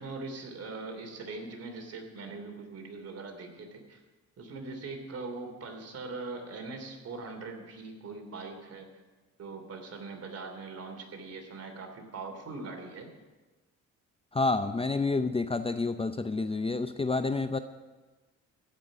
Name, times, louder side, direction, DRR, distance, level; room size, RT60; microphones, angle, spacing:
voice 1, 0.0-4.0 4.4-8.9 9.4-13.1, right 3 dB, 55° right, 3 dB, 3.0 m, -41 dB
voice 2, 14.3-17.6, left 3 dB, 20° left, 10 dB, 0.6 m, -29 dB
15.0 x 5.8 x 9.6 m, 1.2 s
cardioid pair, 90°, 30 cm